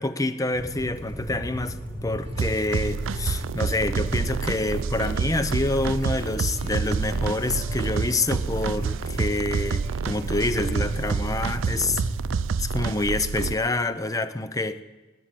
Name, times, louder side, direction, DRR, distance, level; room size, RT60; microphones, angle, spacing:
voice 1, 0.0-1.8 2.0-12.0 12.6-14.8, left 2 dB, 15° left, 11 dB, 0.6 m, -27 dB
sound 1, 0.5-12.4, equal, 10° right, 3.2 m, -36 dB
sound 2, 2.2-11.5, right 1 dB, 30° right, 1.4 m, -47 dB
sound 3, 2.4-13.5, right 5 dB, 85° right, 0.4 m, -28 dB
19.0 x 8.2 x 9.1 m, 1.2 s
head